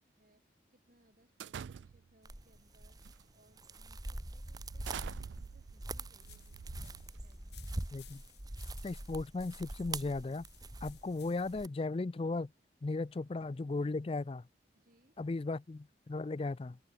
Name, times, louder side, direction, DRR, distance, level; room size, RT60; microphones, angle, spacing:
voice 1, 0.0-3.0 3.3-7.6 10.8-11.0 13.1-13.3 13.7-14.1 14.7-15.4, right 1 dB, 50° right, 6.5 m, -70 dB
sound 1, 1.4-2.2 3.0-3.3 3.7-3.9 4.5-7.4, right 7 dB, 90° right, 0.3 m, -47 dB
sound 2, 2.2-11.7, right 2 dB, 20° right, 1.2 m, -44 dB
sound 3, 6.2-11.7, left 14 dB, 70° left, 7.8 m, -61 dB
voice 2, 7.9-8.2 8.8-10.4 10.8-12.5 12.8-14.4 15.2-16.8, left 3 dB, 30° left, 0.4 m, -36 dB
open air
head